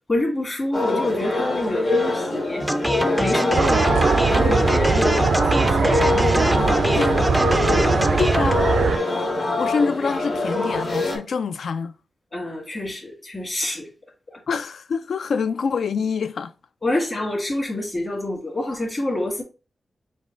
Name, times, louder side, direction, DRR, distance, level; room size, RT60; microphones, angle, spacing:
voice 1, 0.1-2.7 3.1-7.0 7.6-8.3 12.3-13.9 14.3-14.4 16.8-19.4, left 2 dB, 30° left, 1.5 m, -27 dB
sound 1, 0.7-11.2, left 2 dB, 55° left, 1.5 m, -24 dB
sound 2, 2.6-8.5, equal, 5° right, 0.3 m, -24 dB
sound 3, 3.5-9.0, right 5 dB, 75° right, 0.3 m, -21 dB
voice 2, 8.2-8.7 9.1-9.3 9.6-11.9 14.5-16.5, left 5 dB, 75° left, 0.3 m, -26 dB
5.1 x 2.2 x 3.7 m
wide cardioid pair, 145°, 0 cm